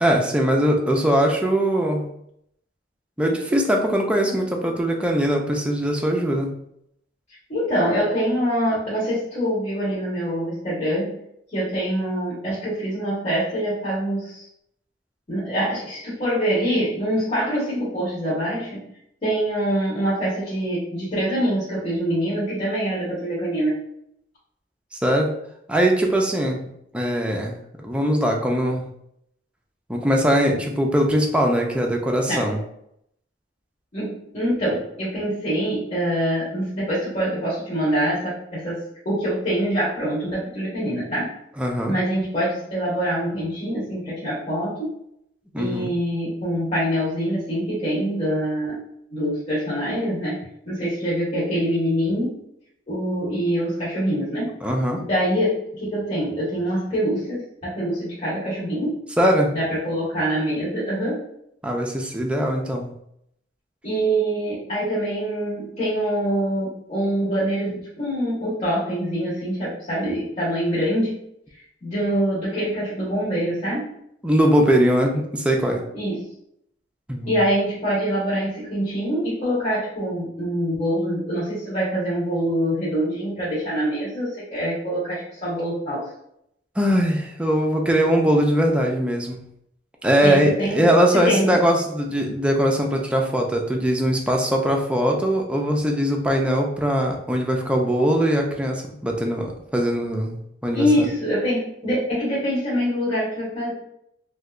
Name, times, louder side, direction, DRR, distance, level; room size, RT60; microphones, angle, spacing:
voice 1, 0.0-2.1 3.2-6.5 24.9-25.3 25.7-28.9 29.9-32.6 41.6-41.9 45.5-45.9 54.6-55.0 59.2-59.5 61.6-62.9 74.2-75.8 77.1-77.3 86.8-89.4 90.0-101.1, equal, 5° right, 1 dB, 0.5 m, -21 dB
voice 2, 7.5-11.2 11.5-14.5 15.3-18.9 19.2-23.8 32.3-32.5 33.9-41.3 41.8-45.0 45.6-48.8 49.1-52.4 52.9-54.6 55.1-59.0 59.5-61.3 63.8-71.2 71.8-74.0 75.9-76.3 77.3-86.1 90.2-91.6 100.7-103.7, equal, 40° left, -10 dB, 1.4 m, -25 dB
3.3 x 2.8 x 2.5 m, 0.73 s
head